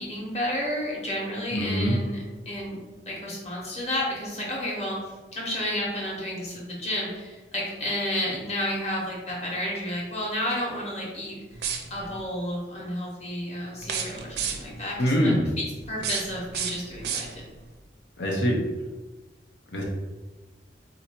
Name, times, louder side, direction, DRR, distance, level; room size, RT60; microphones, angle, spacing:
voice 1, 0.0-2.2 2.4-2.8 3.0-11.6 11.9-17.4, left 1 dB, 35° left, -4 dB, 1.2 m, -31 dB
voice 2, 1.5-2.0 15.0-15.5 18.2-18.6 19.7-19.8, equal, 85° left, -2 dB, 0.9 m, -23 dB
sound 1, 11.5-12.2 13.8-14.8 15.8-17.7, right 7 dB, 65° right, 0.5 m, -33 dB
3.9 x 2.9 x 4.4 m, 1.2 s
head